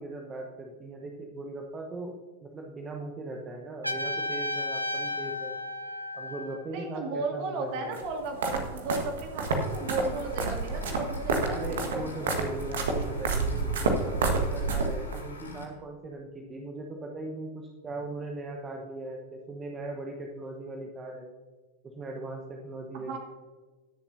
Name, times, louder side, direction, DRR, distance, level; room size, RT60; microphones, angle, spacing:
voice 1, 0.0-5.6 6.1-8.0 11.4-21.3 22.0-23.2, right 2 dB, 20° right, 2 dB, 1.0 m, -39 dB
Trumpet, 3.8-6.7, left 1 dB, 90° right, 0.7 m, -33 dB
voice 2, 6.7-12.3 22.9-23.2, right 3 dB, 45° right, 3 dB, 2.3 m, -35 dB
sound 1, 7.9-15.2, right 3 dB, 60° right, 1.5 m, -30 dB
sound 2, 9.5-15.7, left 3 dB, 75° left, 1.7 m, -47 dB
21.0 x 7.1 x 2.7 m, 1.4 s
figure-of-eight pair, 90°, 0 cm